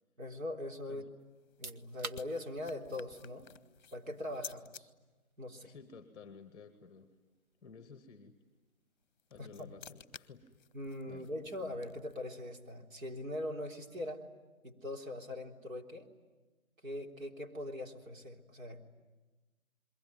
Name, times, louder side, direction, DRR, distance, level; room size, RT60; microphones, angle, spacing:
voice 1, 0.2-1.1 1.6-3.5 3.9-4.9 5.4-5.7 9.4-9.7 10.7-14.2 14.6-16.1 16.8-18.8, left 1 dB, 70° right, 1 dB, 3.8 m, -41 dB
sound 1, 1.2-4.8 9.0-12.3, left 7 dB, 35° left, 0.9 m, -54 dB
sound 2, 1.4-14.0, right 4 dB, 90° right, 1.4 m, -56 dB
voice 2, 5.6-7.1 7.6-8.4 9.3-10.5 11.1-11.3, left 5 dB, 10° left, 9 dB, 1.2 m, -53 dB
28.5 x 22.5 x 9.3 m, 1.2 s
figure-of-eight pair, 155°, 41 cm